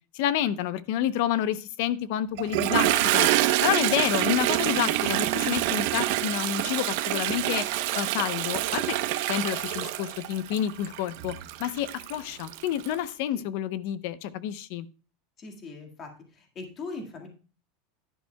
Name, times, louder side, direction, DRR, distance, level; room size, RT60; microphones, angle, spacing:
voice 1, 0.1-3.3 3.6-9.0 9.3-11.3 11.6-14.9, left 11 dB, 50° left, 15 dB, 0.7 m, -29 dB
Toilet flush, 2.4-12.9, right 14 dB, 55° right, 0.7 m, -26 dB
voice 2, 15.4-17.3, left 3 dB, 25° left, 3 dB, 1.8 m, -40 dB
11.0 x 11.0 x 2.2 m, 0.36 s
supercardioid pair, 175°, 0 cm